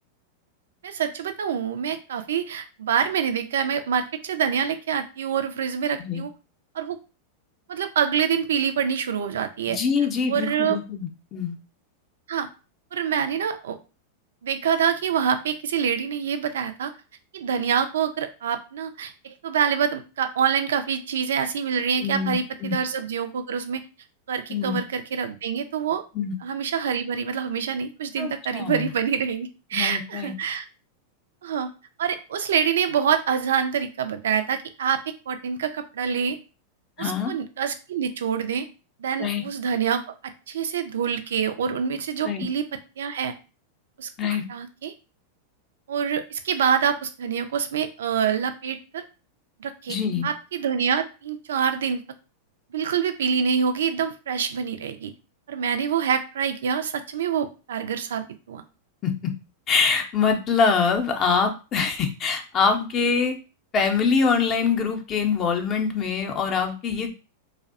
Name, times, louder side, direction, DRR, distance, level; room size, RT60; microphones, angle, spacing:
voice 1, 0.8-6.3 6.7-7.0 7.7-9.8 10.3-10.8 12.3-12.5 12.9-13.8 14.4-16.9 17.3-23.8 24.3-26.0 26.4-30.6 31.4-31.7 32.0-36.4 37.0-38.7 39.0-42.6 43.0-43.3 44.0-44.9 45.9-49.0 49.6-50.0 50.2-52.0 52.7-55.1 55.5-58.6, right 7 dB, 75° right, 9 dB, 0.3 m, -26 dB
voice 2, 9.7-11.6 22.0-22.8 24.5-24.8 26.1-26.3 28.2-28.9 29.7-30.3 37.0-37.3 39.2-39.4 42.2-42.5 44.2-44.4 49.9-50.3 59.0-59.3 59.7-63.4 63.7-67.2, left 5 dB, 35° left, 5 dB, 0.5 m, -24 dB
2.6 x 2.1 x 2.4 m, 0.32 s
hypercardioid pair, 100°, 0 cm